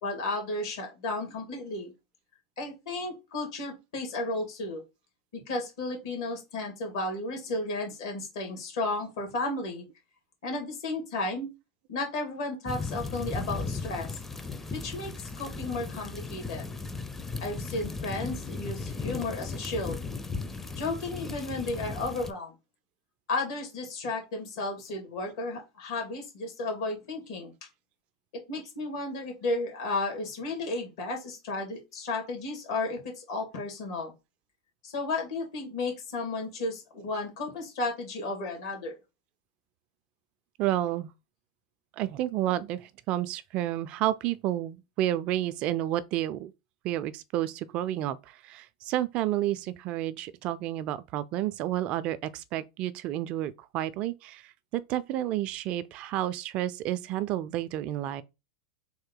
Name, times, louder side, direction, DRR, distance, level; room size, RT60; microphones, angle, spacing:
voice 1, 0.0-1.9 2.6-4.8 5.3-9.8 10.4-11.5 11.9-14.1 14.7-16.6 17.4-20.0 20.8-22.5 23.3-27.5 28.3-34.1 34.8-39.0, left 2 dB, 65° left, 2.0 m, -33 dB
sound 1, 12.7-22.3, left 4 dB, 10° left, 0.5 m, -36 dB
voice 2, 40.6-41.1 42.0-46.5 46.8-48.2 48.4-54.4 54.7-58.2, right 13 dB, 45° right, 0.3 m, -30 dB
3.6 x 2.6 x 3.8 m
hypercardioid pair, 100°, 3 cm